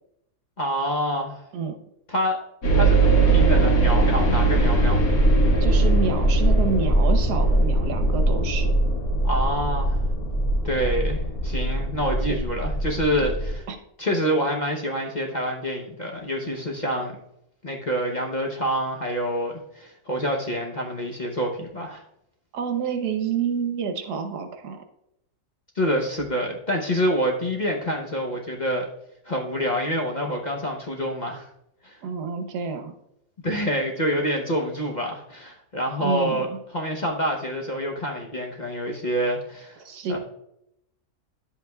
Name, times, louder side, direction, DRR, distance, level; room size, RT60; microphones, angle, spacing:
voice 1, 0.6-1.4 2.1-2.4 2.7-5.1 9.2-10.0 10.6-13.6 14.0-17.2 17.6-22.0 25.7-28.9 29.2-31.5 31.8-32.0 33.4-36.5 36.7-39.8 40.1-40.2, equal, 40° left, 0 dB, 0.7 m, -27 dB
sound 1, 2.6-13.5, right 2 dB, 65° left, 2.1 m, -20 dB
voice 2, 5.6-8.7 13.7-13.8 22.5-24.8 32.0-32.9 36.0-36.5 39.8-40.2, right 6 dB, 85° right, 7 dB, 1.4 m, -28 dB
10.5 x 8.1 x 2.3 m, 0.80 s
omnidirectional pair, 1.7 m